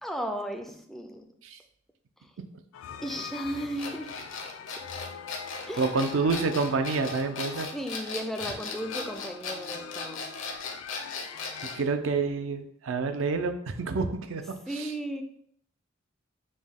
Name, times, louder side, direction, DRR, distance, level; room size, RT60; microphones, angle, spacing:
voice 1, 0.0-1.3 2.2-2.3 3.0-4.1 4.7-4.8 5.7-5.9 7.4-10.3 14.7-15.2, equal, ahead, 5 dB, 0.3 m, -35 dB
sound 1, 2.7-11.8, left 7 dB, 90° left, 0.3 m, -44 dB
sound 2, 3.8-11.8, left 4 dB, 70° left, 0.7 m, -37 dB
voice 2, 5.8-7.7 11.7-14.4, right 4 dB, 70° right, 8 dB, 0.5 m, -28 dB
5.2 x 2.2 x 3.5 m, 0.67 s
head